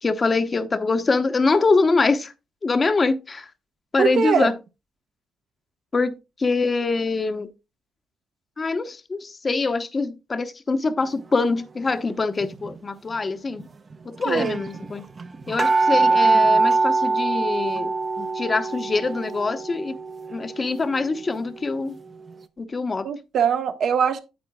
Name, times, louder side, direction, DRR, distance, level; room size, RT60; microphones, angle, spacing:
voice 1, 0.0-2.3 2.6-3.5 3.9-4.5 5.9-7.5 8.6-13.7 14.0-15.0 15.5-20.0 20.3-22.0 22.6-23.1, left 3 dB, 30° left, 0.9 m, -24 dB
voice 2, 4.0-4.5 14.2-14.6 23.0-24.2, right 7 dB, 65° right, 1.1 m, -22 dB
sound 1, 12.4-12.8 13.6-13.7 13.9-14.0 14.2-21.8 22.3-22.4, right 3 dB, 35° right, 0.8 m, -23 dB
9.5 x 8.4 x 2.3 m
cardioid pair, 90°, 0 cm